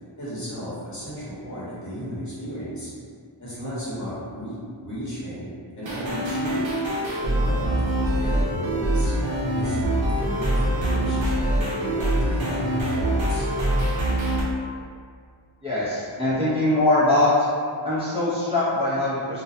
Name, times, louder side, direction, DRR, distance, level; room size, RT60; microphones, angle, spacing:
voice 1, 0.2-2.9 3.4-5.5 5.7-6.6 7.2-13.5, equal, 40° left, -11 dB, 1.0 m, -34 dB
sound 1, 5.8-14.4, right 1 dB, 75° right, 0.7 m, -24 dB
voice 2, 15.6-17.5 17.8-19.4, left 2 dB, 10° right, -13 dB, 0.7 m, -22 dB
2.3 x 2.2 x 2.7 m, 2.2 s
wide cardioid pair, 90°, 47 cm